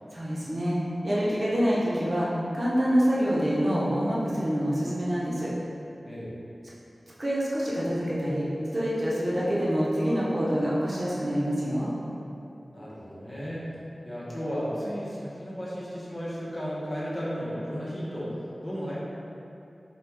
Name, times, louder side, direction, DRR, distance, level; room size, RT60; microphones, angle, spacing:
voice 1, 0.1-0.8 1.0-5.5 7.2-8.5 8.7-11.9, equal, 40° right, -8 dB, 0.8 m, -26 dB
voice 2, 12.7-13.7 14.0-19.0, equal, 30° left, -8 dB, 1.0 m, -34 dB
4.9 x 2.3 x 3.4 m, 2.7 s
wide cardioid pair, 75°, 0 cm